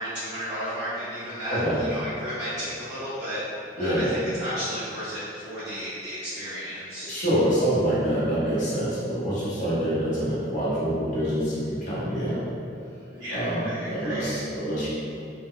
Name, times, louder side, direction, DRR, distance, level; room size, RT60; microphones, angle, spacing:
voice 1, 0.0-3.4 3.7-7.2 13.1-14.3, equal, 5° right, -19 dB, 0.8 m, -33 dB
voice 2, 3.8-4.1 7.1-12.4 13.3-14.9, equal, 45° left, -10 dB, 0.7 m, -26 dB
2.1 x 2.0 x 3.5 m, 2.6 s
head